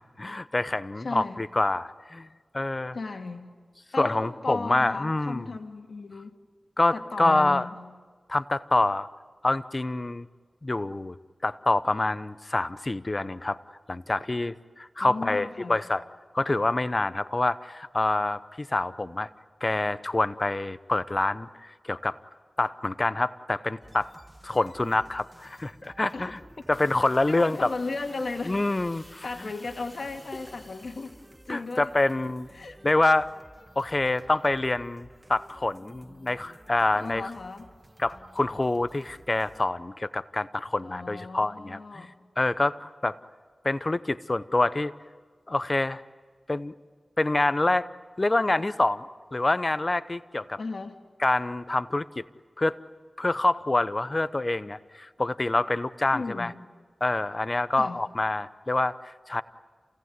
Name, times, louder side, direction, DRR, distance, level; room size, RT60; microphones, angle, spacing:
voice 1, 0.2-2.3 2.5-3.0 4.0-5.5 6.8-7.7 8.3-9.1 9.4-10.3 10.6-11.1 11.4-13.6 13.9-16.0 16.3-19.3 19.6-22.2 22.6-24.1 24.4-26.4 26.7-27.7 28.5-29.5 31.5-32.5 32.8-33.3 33.8-37.3 38.0-42.1 42.4-43.2 43.6-44.9 45.5-46.0 46.5-46.7 47.2-47.9 48.2-49.0 49.3-50.6 51.2-52.2 52.6-52.8 53.2-56.5 57.0-59.4, left 2 dB, 40° left, 15 dB, 0.8 m, -26 dB
voice 2, 1.0-1.4 2.9-3.5 3.9-6.4 6.9-7.7 15.0-15.8 26.1-26.7 27.3-28.6 29.2-31.2 31.5-31.9 32.5-32.8 37.0-37.7 40.8-42.1 50.6-51.0 56.1-56.5 57.8-58.0, left 3 dB, 75° left, 5 dB, 2.3 m, -35 dB
sound 1, 23.8-39.7, right 1 dB, 25° right, 2.2 m, -53 dB
sound 2, 26.7-32.5, equal, 10° left, 3.5 m, -50 dB
28.0 x 17.5 x 9.6 m, 1.5 s
cardioid pair, 45°, 0 cm